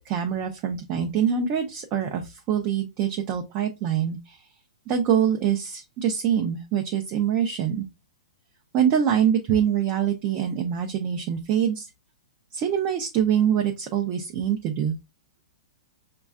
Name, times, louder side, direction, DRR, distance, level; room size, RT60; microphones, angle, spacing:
voice 1, 0.1-4.4 4.9-7.9 8.7-11.9 12.5-14.9, right 8 dB, 30° right, 3 dB, 0.5 m, -24 dB
6.1 x 2.3 x 2.4 m, 0.23 s
hypercardioid pair, 160°, 4 cm